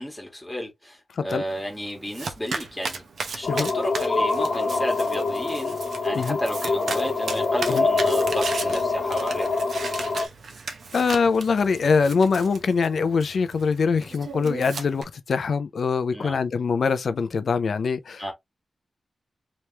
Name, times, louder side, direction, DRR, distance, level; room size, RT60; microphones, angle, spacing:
voice 1, 0.0-3.0 3.3-9.6 16.1-16.4 18.2-18.3, equal, 5° left, 1.7 m, -32 dB
Domestic sounds home sounds, 1.5-15.0, right 4 dB, 75° right, 0.9 m, -36 dB
sound 1, 3.4-10.3, left 3 dB, 50° left, 1.0 m, -25 dB
voice 2, 10.9-18.3, left 5 dB, 65° left, 0.5 m, -23 dB
3.4 x 3.0 x 2.9 m
wide cardioid pair, 145°, 0 cm